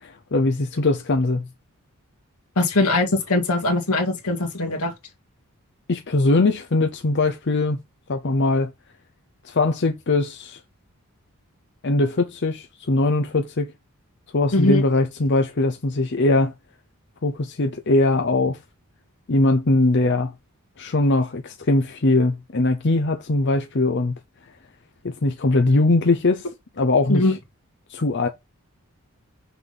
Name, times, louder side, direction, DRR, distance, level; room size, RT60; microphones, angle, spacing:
voice 1, 0.0-1.5 5.9-7.8 8.1-8.7 9.4-10.6 11.8-13.7 14.3-16.5 17.2-18.6 19.3-20.3 20.8-24.1 25.0-26.4 26.8-27.2 27.9-28.3, left 2 dB, 50° left, 0.7 m, -21 dB
voice 2, 2.6-4.9 14.5-14.8 27.1-27.3, left 2 dB, 85° left, 1.9 m, -21 dB
6.0 x 3.5 x 5.5 m
head